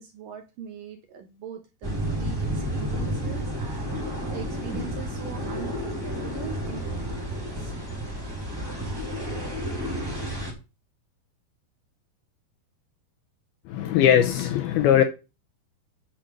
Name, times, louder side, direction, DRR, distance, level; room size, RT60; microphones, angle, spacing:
voice 1, 0.0-7.7, right 8 dB, 80° right, 2.0 m, -41 dB
sound 1, 1.8-10.5, equal, 5° right, 2.0 m, -31 dB
voice 2, 13.7-15.0, left 10 dB, 80° left, 2.2 m, -20 dB
8.7 x 6.6 x 6.0 m
omnidirectional pair, 5.4 m